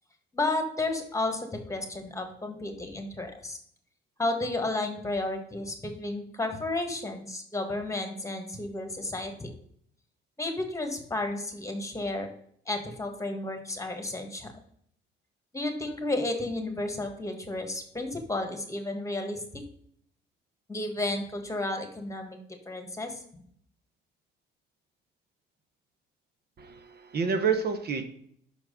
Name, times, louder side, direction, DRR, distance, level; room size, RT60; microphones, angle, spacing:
voice 1, 0.3-3.6 4.2-9.5 10.4-12.3 12.7-14.5 15.5-19.6 20.7-22.4 22.6-23.1, left 2 dB, 15° left, 5 dB, 1.6 m, -32 dB
voice 2, 26.6-28.0, right 5 dB, 55° right, 7 dB, 1.0 m, -28 dB
6.1 x 4.6 x 5.4 m, 0.65 s
cardioid pair, 90°, 20 cm